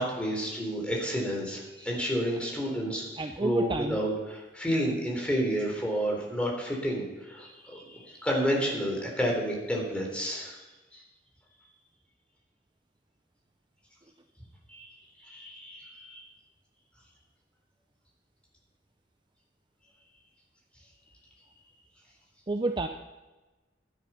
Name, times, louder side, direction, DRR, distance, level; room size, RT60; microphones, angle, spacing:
voice 1, 0.0-10.6 10.9-11.0 14.7-14.9 15.2-16.3, equal, 5° left, -1 dB, 3.7 m, -30 dB
voice 2, 3.2-4.0 22.5-22.9, right 2 dB, 25° right, 6 dB, 0.6 m, -29 dB
12.5 x 10.5 x 5.7 m, 1.1 s
head